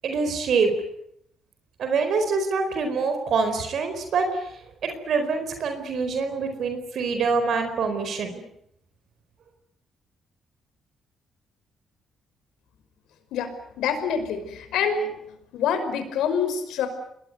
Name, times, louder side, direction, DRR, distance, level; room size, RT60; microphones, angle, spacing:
voice 1, 0.0-0.7 1.8-4.4 4.8-8.4, right 4 dB, 65° right, 7 dB, 4.4 m, -25 dB
voice 2, 13.8-15.1 15.5-16.9, left 7 dB, 85° left, 9 dB, 5.5 m, -26 dB
27.0 x 21.0 x 9.5 m, 0.75 s
cardioid pair, 90°, 0 cm